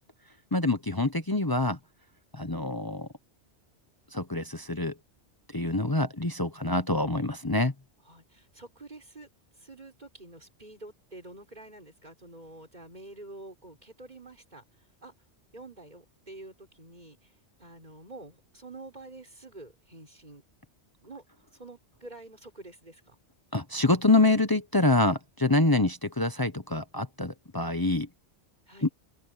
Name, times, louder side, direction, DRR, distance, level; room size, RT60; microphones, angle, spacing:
voice 1, 0.5-1.8 2.3-3.1 4.1-4.9 5.5-7.7 23.5-28.1 28.8-28.9, left 2 dB, 20° left, 0.9 m, -26 dB
voice 2, 8.1-9.3 9.6-14.6 15.0-15.1 15.5-17.2 17.6-20.4 21.0-21.2 21.6-23.2 28.7-28.9, right 2 dB, 40° right, 5.6 m, -48 dB
omnidirectional pair, 1.1 m